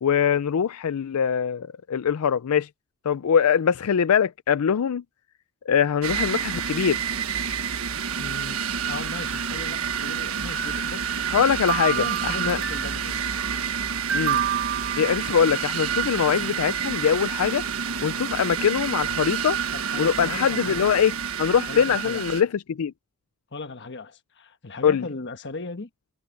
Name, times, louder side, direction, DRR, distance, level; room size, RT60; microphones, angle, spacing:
voice 1, 0.0-2.7 3.0-5.0 5.7-7.0 11.3-12.6 14.1-14.4 15.0-17.6 18.0-19.6 20.0-21.1 21.4-22.9 24.8-25.1, left 7 dB, 85° left, 0.4 m, -22 dB
sound 1, 6.0-22.4, right 7 dB, 75° right, 1.4 m, -29 dB
voice 2, 8.2-11.2 12.0-13.2 19.7-20.9 21.7-22.2 23.5-25.9, left 3 dB, 55° left, 1.3 m, -37 dB
sound 2, 10.5-11.4 11.7-13.1 14.1-15.7, right 9 dB, 55° right, 1.3 m, -29 dB
head